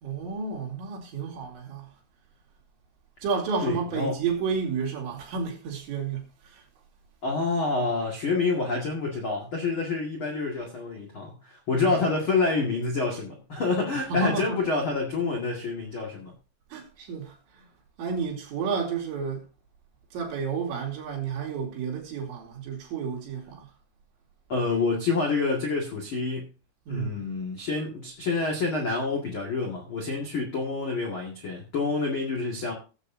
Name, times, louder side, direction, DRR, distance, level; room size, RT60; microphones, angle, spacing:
voice 1, 0.0-1.9 3.2-6.6 11.7-12.1 13.9-14.6 16.7-17.7 18.0-19.4 20.1-23.7 26.9-27.2, right 5 dB, 85° right, 4.9 m, -31 dB
voice 2, 3.6-4.1 7.2-16.3 24.5-26.5 26.9-32.7, left 3 dB, 40° left, 2.0 m, -27 dB
18.0 x 8.1 x 2.7 m
omnidirectional pair, 5.1 m